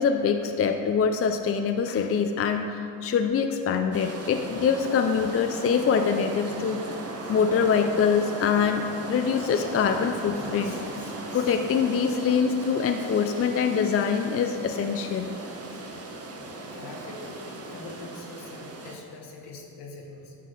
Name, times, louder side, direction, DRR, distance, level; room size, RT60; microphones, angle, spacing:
voice 1, 0.0-6.8 7.3-10.8 11.3-15.3, left 6 dB, 35° left, 6 dB, 0.5 m, -24 dB
sound 1, 3.9-19.0, right 2 dB, 35° right, 1.2 m, -37 dB
voice 2, 16.7-20.3, left 3 dB, 75° left, 0 dB, 1.5 m, -43 dB
9.8 x 3.7 x 6.3 m, 2.6 s
supercardioid pair, 75°, 40 cm